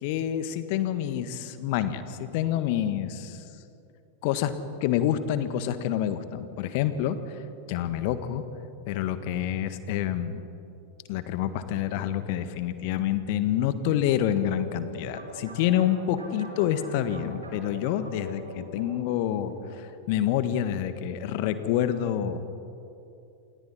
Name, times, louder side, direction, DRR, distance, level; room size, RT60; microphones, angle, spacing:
voice 1, 0.0-3.4 4.2-4.5 4.8-7.4 7.7-8.4 8.9-10.4 11.1-22.4, left 10 dB, 45° left, 11 dB, 1.5 m, -27 dB
sound 1, 14.4-19.6, right 1 dB, 75° right, 5.1 m, -44 dB
28.5 x 28.0 x 4.3 m, 2.7 s
figure-of-eight pair, 90°, 0 cm